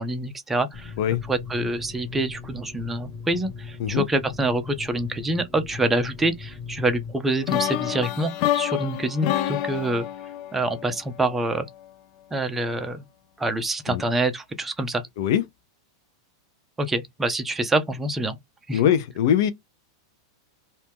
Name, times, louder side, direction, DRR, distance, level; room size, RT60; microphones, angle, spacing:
voice 1, 0.0-0.9 1.3-10.1 10.5-11.7 12.3-13.0 13.4-15.0 16.8-18.4 18.7-18.8, right 2 dB, 10° right, 0.7 m, -26 dB
sound 1, 0.7-7.1, left 5 dB, 25° left, 2.0 m, -39 dB
sound 2, 7.5-11.4, left 12 dB, 45° left, 0.5 m, -28 dB
voice 2, 18.7-19.5, left 9 dB, 65° left, 0.9 m, -22 dB
3.0 x 2.8 x 3.7 m
supercardioid pair, 135°, 2 cm